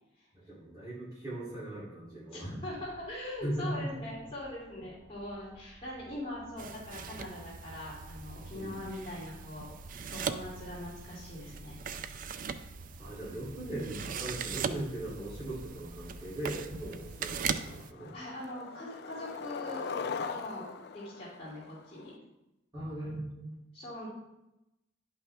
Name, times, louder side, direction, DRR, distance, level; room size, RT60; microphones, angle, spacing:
voice 1, 0.4-2.5 3.4-3.8 8.5-8.9 13.0-18.1 22.7-23.5, right 1 dB, 15° right, -10 dB, 3.1 m, -39 dB
voice 2, 2.3-9.7 10.1-11.9 18.1-19.9 20.2-22.1 23.7-24.1, left 1 dB, 30° left, -8 dB, 3.1 m, -42 dB
sound 1, 2.6-17.3, left 1 dB, 70° left, 1.7 m, -53 dB
sound 2, 6.6-17.9, right 6 dB, 40° right, 0.3 m, -40 dB
Skateboard, 16.4-16.5 16.9-17.2 17.5-22.1, left 5 dB, 50° left, 0.3 m, -41 dB
10.0 x 5.7 x 3.6 m, 0.93 s
head